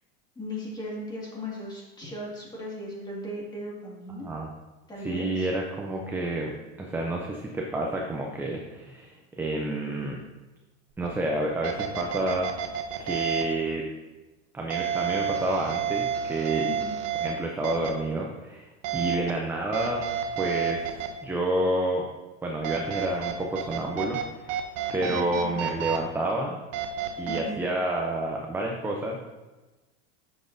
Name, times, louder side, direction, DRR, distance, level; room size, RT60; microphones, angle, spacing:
voice 1, 0.4-4.3 4.9-5.5 16.6-16.9 25.0-25.6 27.2-27.6, left 1 dB, 10° left, -4 dB, 1.9 m, -37 dB
voice 2, 5.0-6.5 6.8-10.2 11.0-12.5 13.0-13.8 14.5-16.7 17.2-20.0 20.4-20.9 21.2-22.1 22.4-24.6 24.9-26.6 27.2-29.2, right 1 dB, 5° right, 0 dB, 0.5 m, -29 dB
sound 1, 11.0-11.1 11.6-13.4 14.7-17.3 17.6-17.9 18.8-19.3 19.7-21.1 22.6-24.2 24.5-26.0 26.7-27.4, right 9 dB, 45° right, 0.8 m, -30 dB
8.8 x 6.2 x 2.6 m, 1.2 s
supercardioid pair, 135°, 34 cm